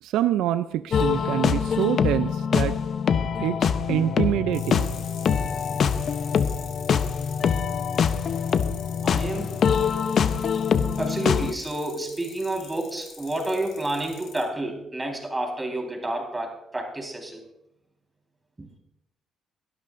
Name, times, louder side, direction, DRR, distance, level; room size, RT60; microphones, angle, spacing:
voice 1, 0.0-2.8 3.4-4.9, right 12 dB, 90° right, 12 dB, 0.4 m, -26 dB
sound 1, 0.9-11.5, left 7 dB, 60° left, 0.7 m, -24 dB
sound 2, 4.5-14.4, left 7 dB, 85° left, 4.1 m, -45 dB
voice 2, 9.0-9.5 11.0-17.4 18.6-18.7, right 1 dB, 15° right, 1 dB, 4.1 m, -30 dB
20.5 x 12.5 x 2.5 m, 0.82 s
cardioid pair, 90°, 0 cm